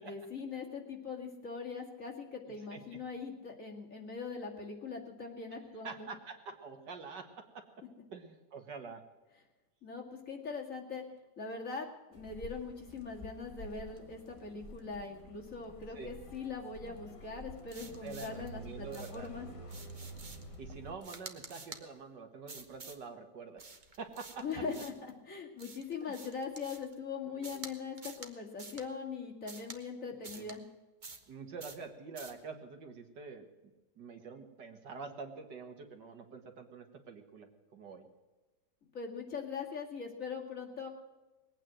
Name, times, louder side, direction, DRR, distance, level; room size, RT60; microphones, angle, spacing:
voice 1, 0.0-6.1 9.8-11.0 11.4-19.5 24.4-24.9 25.3-30.6 38.9-40.9, left 5 dB, 45° left, 0 dB, 2.7 m, -41 dB
voice 2, 5.7-7.3 7.5-7.6 8.1-9.0 15.9-16.2 18.0-19.3 20.6-23.6 24.0-24.6 26.0-26.2 27.4-27.6 30.3-30.5 31.3-33.7 34.0-38.1, right 5 dB, 70° right, 5 dB, 2.3 m, -46 dB
sound 1, 12.1-20.9, equal, 20° left, 1.5 m, -49 dB
sound 2, 17.7-18.5 18.9-19.3 19.7-20.5 21.0-21.8 22.5-23.0 23.6-25.1 25.6-26.9 27.4-27.7 28.0-28.3 28.6-28.9 29.5-29.8 30.2-30.6 31.0-31.3 31.6-31.8 32.2-32.4, right 3 dB, 30° right, 1.2 m, -49 dB
20.5 x 9.1 x 7.6 m, 1.2 s
omnidirectional pair, 1.9 m